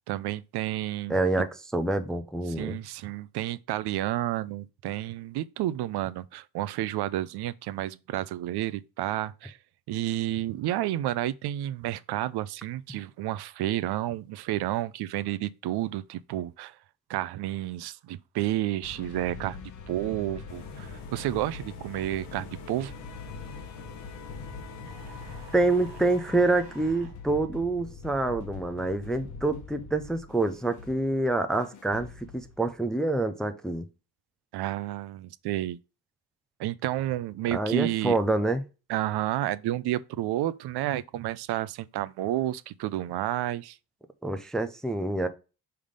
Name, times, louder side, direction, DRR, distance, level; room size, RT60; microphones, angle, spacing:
voice 1, 0.1-1.3 2.6-9.6 9.9-16.7 17.1-19.6 19.9-22.9 34.5-35.8 36.6-38.2 38.9-43.8, right 14 dB, 70° right, 0.5 m, -31 dB
voice 2, 1.1-2.8 25.5-33.9 37.5-38.6 44.2-45.3, right 2 dB, ahead, 0.4 m, -27 dB
sound 1, 18.8-32.9, left 5 dB, 45° left, 1.0 m, -44 dB
sound 2, 20.5-26.2, left 5 dB, 80° left, 1.3 m, -46 dB
sound 3, 24.9-27.2, right 8 dB, 90° right, 1.2 m, -51 dB
5.7 x 3.4 x 5.0 m
cardioid pair, 145°, 41 cm